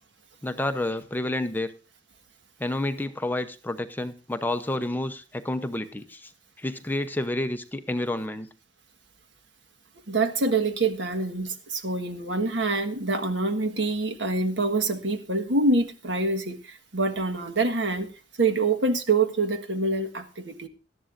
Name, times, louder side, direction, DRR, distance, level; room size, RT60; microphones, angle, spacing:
voice 1, 0.4-1.7 2.6-6.3 6.6-8.5, left 1 dB, 10° left, 9 dB, 0.7 m, -29 dB
voice 2, 10.1-18.1 18.4-20.7, right 3 dB, 70° right, 7 dB, 1.5 m, -26 dB
18.5 x 12.5 x 2.5 m, 0.33 s
head